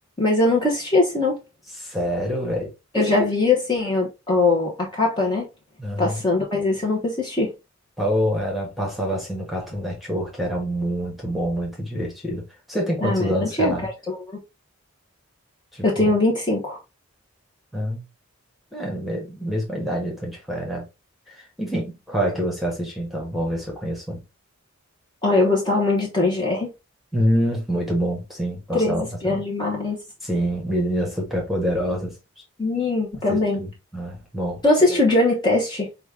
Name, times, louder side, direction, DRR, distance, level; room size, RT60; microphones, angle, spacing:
voice 1, 0.2-1.4 2.9-5.5 6.0-7.5 13.0-13.3 13.6-14.4 15.8-16.8 25.2-26.7 28.7-30.0 32.6-33.6 34.6-35.9, left 2 dB, 20° left, 1.0 m, -21 dB
voice 2, 1.8-3.2 5.8-6.2 8.0-12.4 12.7-13.9 15.7-16.1 17.7-18.0 18.7-20.8 21.3-24.2 27.1-29.4 30.2-32.1 33.3-34.6, equal, ahead, 1.3 m, -26 dB
5.1 x 2.4 x 3.4 m
head